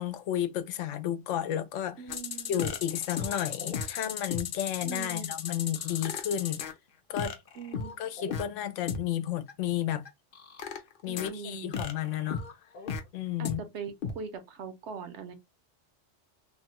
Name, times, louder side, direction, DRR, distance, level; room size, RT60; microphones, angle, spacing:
voice 1, 0.0-2.0 2.5-6.6 7.1-7.4 8.0-10.1 11.0-12.4 13.1-13.6, left 11 dB, 85° left, 0.9 m, -32 dB
voice 2, 2.0-2.7 4.8-5.4 7.6-8.2 11.1-11.8 13.4-15.3, right 5 dB, 70° right, 1.0 m, -41 dB
sound 1, 2.1-6.7 7.2-8.4 8.9-9.0 9.5-9.6 10.0-11.3 11.7-13.0 13.4-13.5 14.0-14.1, left 7 dB, 55° left, 0.7 m, -35 dB
3.3 x 2.2 x 2.9 m
omnidirectional pair, 1.2 m